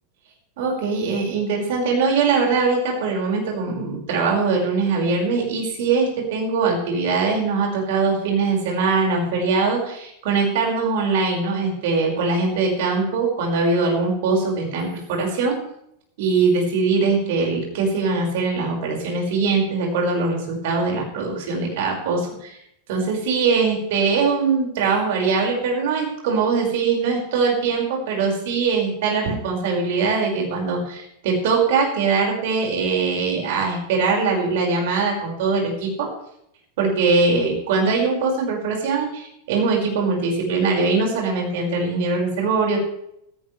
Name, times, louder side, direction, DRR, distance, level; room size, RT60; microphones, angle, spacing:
voice 1, 0.6-15.6 16.2-22.6 22.9-36.1 36.8-42.8, right 4 dB, 50° right, 0 dB, 5.8 m, -22 dB
16.5 x 16.0 x 3.4 m, 0.74 s
figure-of-eight pair, 90°, 0 cm